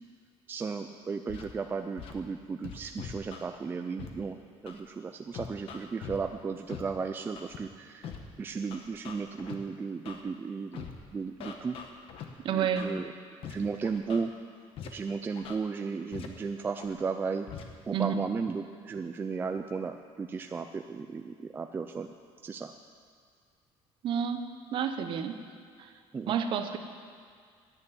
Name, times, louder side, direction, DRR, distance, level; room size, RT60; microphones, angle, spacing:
voice 1, 0.5-8.1 8.4-10.8 11.1-11.8 12.5-13.1 13.5-14.3 14.8-17.5 17.9-22.1 22.4-22.7 26.1-26.3, right 5 dB, 20° right, 6 dB, 0.4 m, -35 dB
Scratching (performance technique), 1.3-1.5 2.0-2.1 2.6-3.5 4.0-4.1 4.7-4.8 5.3-6.2 6.7-6.8 7.4-7.6 8.0-8.2 8.7-9.5 10.1-10.2 10.7-10.9 11.4-12.2 12.8-12.9 13.4-13.5 13.8-14.2 14.8-14.9 15.4-15.5 16.1-16.3 16.8-16.9 17.5-17.6, left 8 dB, 55° left, 1.2 m, -42 dB
voice 2, 12.4-12.9 17.9-18.2 24.0-24.5 24.7-25.4 25.8-25.9 26.3-26.8, right 8 dB, 45° right, 7 dB, 0.9 m, -29 dB
10.5 x 8.4 x 9.0 m, 2.1 s
cardioid pair, 160°, 12 cm